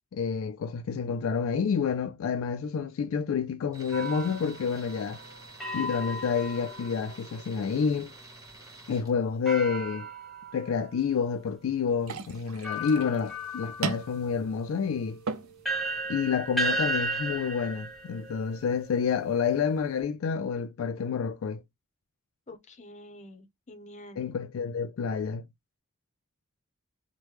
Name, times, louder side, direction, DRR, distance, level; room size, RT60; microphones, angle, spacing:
voice 1, 0.1-5.2 5.7-8.1 8.9-10.1 10.5-15.2 16.1-21.6 24.2-25.4, left 6 dB, 70° left, 0.3 m, -29 dB
Tools, 3.7-9.1, right 2 dB, 15° right, 1.4 m, -49 dB
sound 1, 3.9-7.4 9.5-10.9 11.7-11.8 12.6-19.5, right 1 dB, ahead, 0.9 m, -35 dB
sound 2, 12.0-20.0, right 4 dB, 80° right, 0.5 m, -41 dB
voice 2, 22.5-24.2, left 1 dB, 35° left, 0.7 m, -47 dB
3.1 x 2.1 x 3.2 m
head